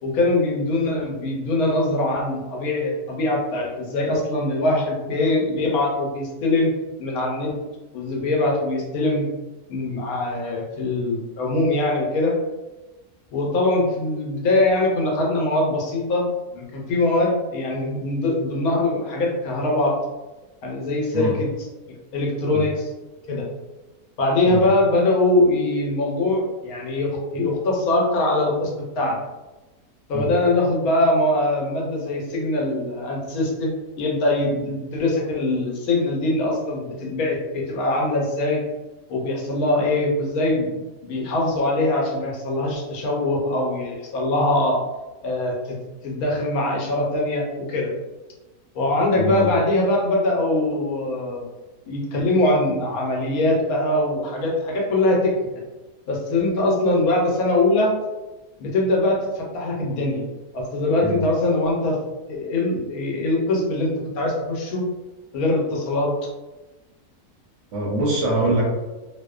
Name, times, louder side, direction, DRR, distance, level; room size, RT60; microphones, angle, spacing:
voice 1, 0.0-6.7 7.0-7.5 7.9-9.3 9.7-12.3 13.3-16.2 16.5-19.9 20.6-21.5 22.1-22.9 23.3-23.4 24.2-28.7 29.0-29.2 30.1-38.6 39.1-44.8 45.2-45.8 46.0-47.9 48.7-51.5 51.9-55.3 56.1-57.9 58.6-60.2 60.5-62.0 62.3-63.9 64.2-64.8 65.3-66.1, left 2 dB, 75° left, -1 dB, 1.1 m, -22 dB
voice 2, 67.7-68.6, right 1 dB, 65° right, -4 dB, 0.8 m, -23 dB
2.7 x 2.0 x 2.3 m, 1.1 s
omnidirectional pair, 1.6 m